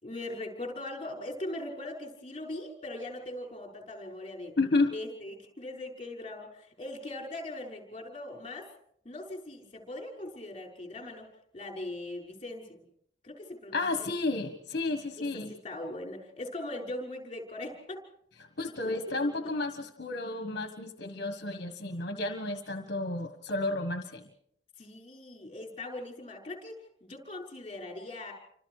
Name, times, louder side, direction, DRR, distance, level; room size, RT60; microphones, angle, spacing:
voice 1, 0.0-4.5 4.9-8.7 9.0-11.3 11.5-12.8 13.2-14.1 15.2-18.0 18.8-19.2 19.4-19.6 24.8-28.3, left 1 dB, 30° left, 1 dB, 5.9 m, -40 dB
voice 2, 4.6-4.9 13.7-15.5 18.6-24.3, left 2 dB, 55° left, 6 dB, 1.5 m, -31 dB
29.0 x 26.0 x 4.9 m, 0.70 s
head